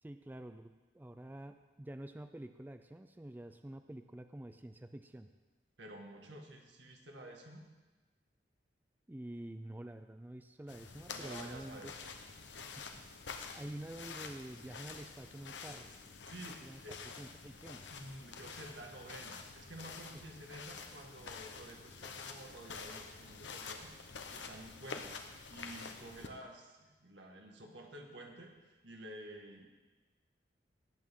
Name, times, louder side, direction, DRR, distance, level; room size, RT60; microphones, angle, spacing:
voice 1, 0.0-5.3 9.1-11.9 12.8-15.9 16.6-16.8 17.2-17.8, right 1 dB, 10° right, 8 dB, 0.4 m, -48 dB
voice 2, 5.8-7.6 11.1-12.1 16.3-17.0 17.9-25.2 25.5-29.7, right 1 dB, 85° right, 1 dB, 1.9 m, -51 dB
sound 1, 10.7-26.3, left 5 dB, 90° left, 1.0 m, -48 dB
18.0 x 8.5 x 3.7 m, 1.2 s
head